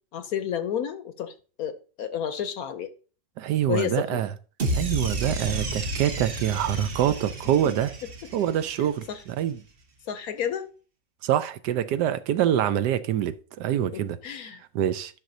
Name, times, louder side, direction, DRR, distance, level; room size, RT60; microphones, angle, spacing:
voice 1, 0.1-2.9 3.7-4.2 9.1-9.2 10.1-10.7 13.9-14.6, left 9 dB, 70° left, 1.0 m, -31 dB
voice 2, 3.4-4.3 4.7-7.9 8.3-9.6 11.2-14.2 14.7-15.2, right 11 dB, 75° right, 1.2 m, -25 dB
sound 1, 4.6-8.9, right 1 dB, 40° right, 1.0 m, -31 dB
11.0 x 6.0 x 2.6 m
omnidirectional pair, 1.9 m